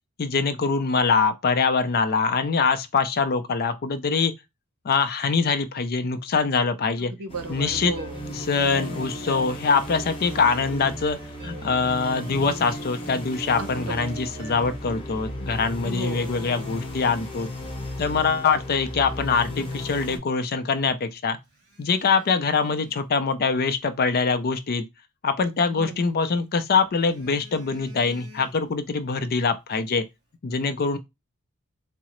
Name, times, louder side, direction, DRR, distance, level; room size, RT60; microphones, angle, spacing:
voice 1, 0.2-4.3 4.8-7.1 7.5-7.9 8.4-11.2 11.4-17.5 18.0-21.4 21.8-24.9 25.2-30.0 30.4-31.0, left 5 dB, 45° left, 0.4 m, -23 dB
voice 2, 7.0-8.3 13.6-14.0 15.8-16.5 25.7-26.1, right 4 dB, 90° right, 0.6 m, -35 dB
sound 1, 7.3-20.2, equal, 25° left, 0.8 m, -35 dB
sound 2, 8.0-14.8, equal, 25° right, 0.8 m, -45 dB
Telephone, 11.0-13.6 14.8-16.7 17.4-17.5 18.1-18.2 18.5-20.6 20.8-21.0 21.5-23.8 25.4-26.4 26.7-28.9 29.2-29.4, left 2 dB, 55° right, 1.6 m, -54 dB
3.7 x 2.0 x 3.0 m
head